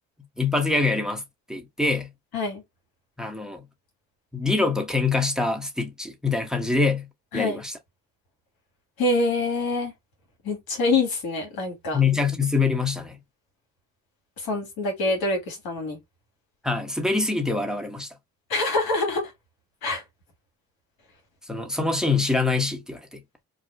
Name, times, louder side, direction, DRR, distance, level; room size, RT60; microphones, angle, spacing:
voice 1, 0.4-1.2 1.5-2.1 3.2-3.6 4.3-7.1 7.3-7.7 11.9-13.2 16.6-18.1 21.5-23.2, left 3 dB, ahead, 1.0 m, -24 dB
voice 2, 9.0-9.9 10.4-12.0 14.4-16.0 18.5-19.3 19.8-20.0, left 2 dB, 80° left, 1.4 m, -25 dB
2.5 x 2.3 x 3.4 m
supercardioid pair, 40°, 36 cm